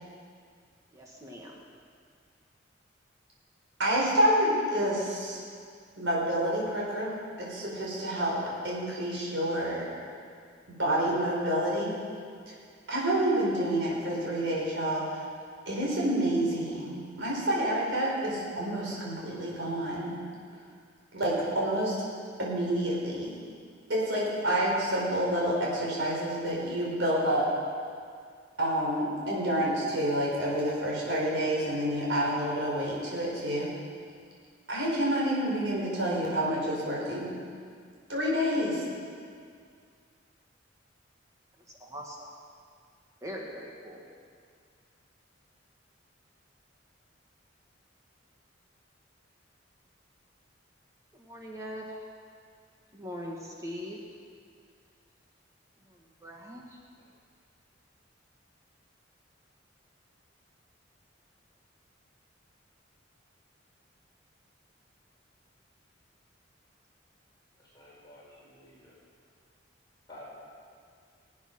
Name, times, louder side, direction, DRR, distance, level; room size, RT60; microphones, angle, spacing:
voice 1, 0.9-1.6 41.7-42.3 43.2-44.0 51.1-52.1 52.9-54.0 55.9-56.8, equal, 15° right, -1 dB, 1.5 m, -41 dB
voice 2, 3.8-5.4 6.0-8.4 8.6-9.8 10.8-11.9 12.9-15.0 15.7-20.1 21.1-21.9 22.4-23.3 23.9-27.5 28.6-33.7 34.7-37.3 38.1-38.8, right 1 dB, 75° right, -4 dB, 4.6 m, -28 dB
voice 3, 67.7-68.9 70.1-70.2, left 1 dB, 20° left, -8 dB, 5.0 m, -51 dB
21.0 x 8.4 x 6.0 m, 2.1 s
head